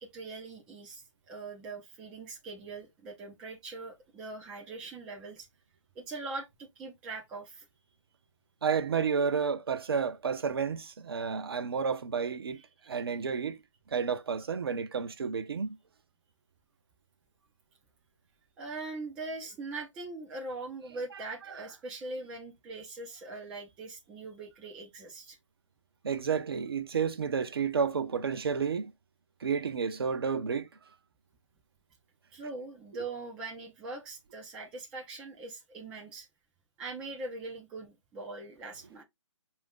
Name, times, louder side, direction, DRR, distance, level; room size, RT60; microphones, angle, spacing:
voice 1, 0.0-5.5 6.0-7.7 18.6-25.4 32.3-36.3 36.8-39.0, right 3 dB, 5° right, 0.4 m, -41 dB
voice 2, 8.6-12.6 12.9-13.6 13.9-15.8 21.5-21.6 26.0-28.9 29.4-30.7, right 6 dB, 50° right, 0.6 m, -31 dB
4.5 x 2.6 x 3.5 m
figure-of-eight pair, 145°, 16 cm